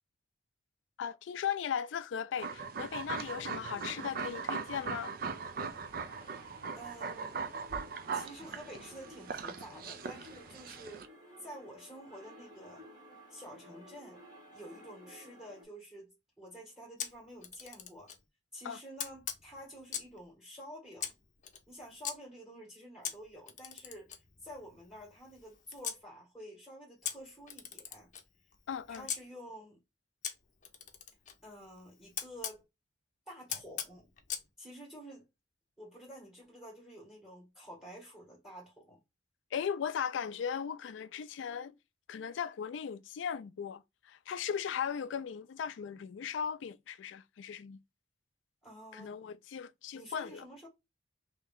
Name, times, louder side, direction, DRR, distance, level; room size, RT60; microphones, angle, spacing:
voice 1, 1.0-5.1 18.6-18.8 28.7-29.1 39.5-41.7 42.1-47.8 48.9-50.4, left 7 dB, 85° left, 0.3 m, -37 dB
sound 1, 2.4-11.1, right 5 dB, 50° right, 0.4 m, -40 dB
sound 2, 3.0-15.7, equal, 20° right, 1.4 m, -55 dB
voice 2, 6.7-7.4 8.1-11.1 11.4-12.9 13.3-14.2 14.5-18.1 18.5-21.1 21.7-28.1 28.9-29.8 31.4-32.6 33.3-34.1 34.6-35.3 35.8-39.0 48.6-49.3 49.9-50.7, equal, ahead, 1.7 m, -50 dB
Camera, 17.0-18.2 19.0-20.2 21.0-22.1 23.0-26.0 27.0-29.2 30.2-32.6 33.5-34.5, left 9 dB, 45° left, 0.6 m, -42 dB
3.1 x 2.8 x 3.6 m
head